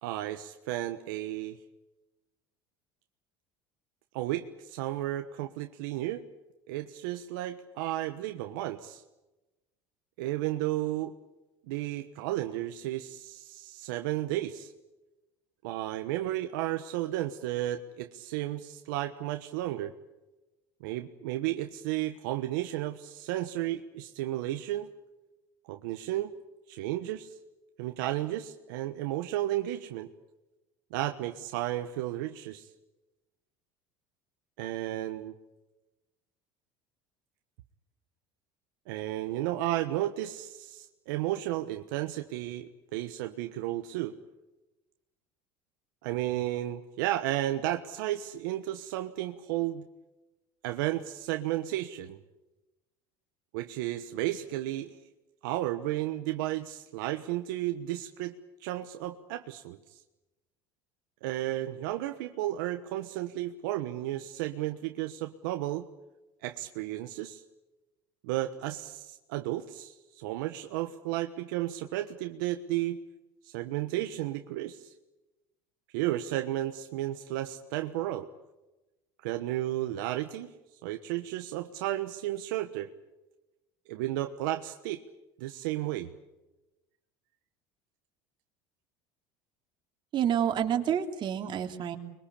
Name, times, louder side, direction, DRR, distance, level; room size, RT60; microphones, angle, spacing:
voice 1, 0.0-1.6 4.1-6.2 6.7-9.0 10.2-11.1 11.7-14.7 15.6-19.9 20.8-24.9 25.7-26.3 26.7-27.3 27.8-30.1 30.9-32.7 34.6-35.3 38.9-44.1 46.0-49.9 50.6-52.2 53.5-55.0 55.4-60.0 61.2-65.9 66.4-67.4 68.2-73.0 73.4-74.9 75.9-78.3 79.2-80.5 80.8-82.9 83.9-85.0 85.4-86.1, right 14 dB, 80° right, 7 dB, 1.2 m, -33 dB
voice 2, 90.1-92.0, right 9 dB, 45° right, 4 dB, 3.2 m, -28 dB
24.5 x 22.0 x 8.6 m, 1.0 s
supercardioid pair, 100°, 11 cm